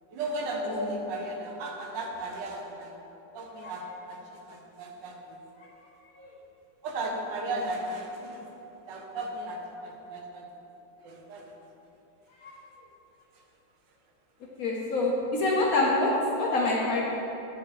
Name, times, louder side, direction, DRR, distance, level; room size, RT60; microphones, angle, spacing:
voice 1, 0.1-2.9 3.3-5.4 6.8-8.5 8.9-10.5 11.0-11.4, right 2 dB, 70° right, 1 dB, 1.5 m, -36 dB
voice 2, 0.6-1.0 3.6-3.7 6.2-6.3 7.5-7.6 12.4-12.5 14.6-17.0, left 2 dB, 55° left, -2 dB, 1.1 m, -26 dB
9.8 x 4.6 x 4.9 m, 2.9 s
omnidirectional pair, 2.1 m